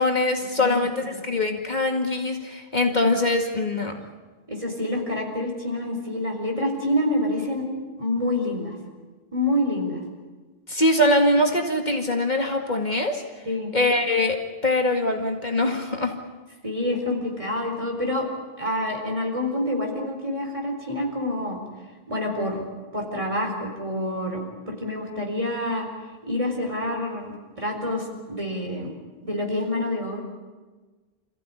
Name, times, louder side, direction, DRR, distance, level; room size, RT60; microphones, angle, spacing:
voice 1, 0.0-4.0 10.7-13.2 13.7-16.1, left 1 dB, 45° left, 3 dB, 2.2 m, -23 dB
voice 2, 0.6-1.1 4.5-7.7 8.0-8.7 9.3-10.0 13.5-13.7 16.6-18.3 18.6-21.6 22.1-22.6 22.9-24.4 24.7-25.9 26.2-28.9 29.2-30.2, left 1 dB, 30° right, 1 dB, 4.5 m, -27 dB
27.0 x 15.5 x 9.8 m, 1.3 s
omnidirectional pair, 1.0 m